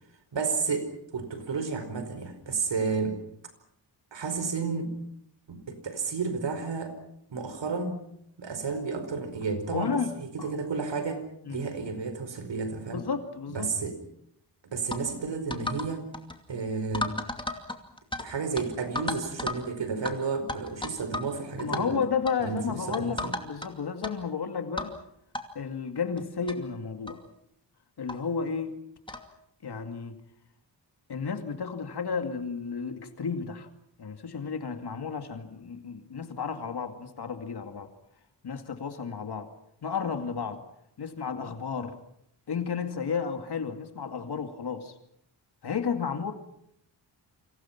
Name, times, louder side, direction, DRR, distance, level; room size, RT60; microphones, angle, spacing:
voice 1, 0.3-3.2 4.1-5.0 5.5-7.0 7.3-8.0 8.4-11.2 11.5-13.0 13.5-14.0 14.7-16.0 16.5-17.2 18.2-22.0 22.4-23.3, right 4 dB, 80° right, 10 dB, 5.0 m, -32 dB
voice 2, 9.7-10.1 10.4-10.6 11.4-11.6 12.9-13.7 21.6-24.9 25.5-27.2 28.0-28.7 29.6-30.2 31.1-33.7 34.0-37.9 38.4-39.5 39.8-40.6 41.0-42.0 42.5-44.9 45.6-46.3, left 6 dB, 65° left, 6 dB, 2.4 m, -32 dB
sound 1, 14.9-15.1 15.5-15.9 16.1-16.4 16.9-18.3 18.6-18.7 19.0-19.6 20.1-20.2 20.5-21.3 21.6-21.8 22.3-22.4 22.9-23.7 24.0-24.1 24.8-25.0 25.3-25.4 26.2-26.3 26.5-26.6 27.1-27.2 28.1-28.2 29.1-29.3, left 2 dB, 10° left, 2.5 m, -33 dB
29.0 x 26.0 x 5.9 m, 0.74 s
wide cardioid pair, 145°, 43 cm